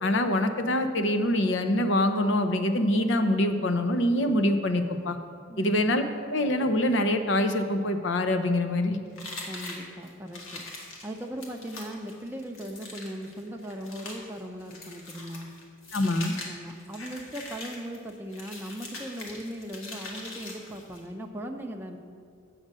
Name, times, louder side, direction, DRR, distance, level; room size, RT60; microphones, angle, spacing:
voice 1, 0.0-5.2 5.6-6.0 6.3-9.0 15.9-16.3, left 1 dB, 65° left, 8 dB, 0.7 m, -25 dB
sound 1, 9.2-21.1, left 2 dB, 90° left, 1.8 m, -42 dB
voice 2, 9.5-10.6 11.0-15.5 16.5-22.0, equal, 10° right, 1 dB, 0.5 m, -38 dB
7.8 x 6.4 x 7.5 m, 2.4 s
head